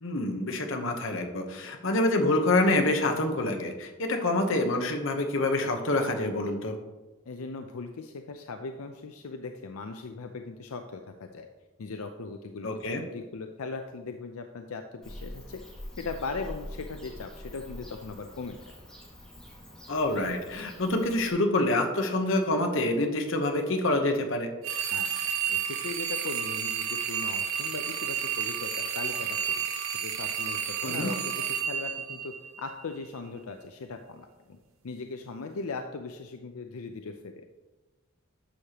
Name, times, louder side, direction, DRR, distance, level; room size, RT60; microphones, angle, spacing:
voice 1, 0.0-6.8 12.6-13.0 19.9-24.5 30.8-31.1, left 2 dB, 65° left, 4 dB, 1.0 m, -26 dB
voice 2, 7.3-11.5 11.8-12.7 13.0-15.6 16.0-18.6 24.9-29.4 30.0-34.6 34.8-37.4, left 4 dB, 85° left, 5 dB, 0.5 m, -39 dB
Bird / Cricket, 15.0-21.3, left 1 dB, 5° left, 1.5 m, -45 dB
sound 1, 24.6-32.8, right 8 dB, 75° right, 0.8 m, -31 dB
11.5 x 6.5 x 2.9 m, 1.2 s
head